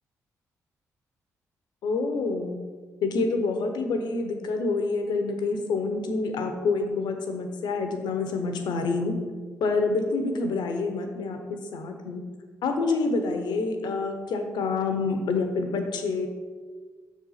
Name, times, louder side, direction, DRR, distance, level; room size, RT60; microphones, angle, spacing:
voice 1, 1.8-2.6 3.0-9.2 9.6-12.2 12.6-16.3, left 3 dB, 65° left, 5 dB, 0.9 m, -27 dB
6.0 x 4.2 x 5.6 m, 1.5 s
hypercardioid pair, 40°, 8 cm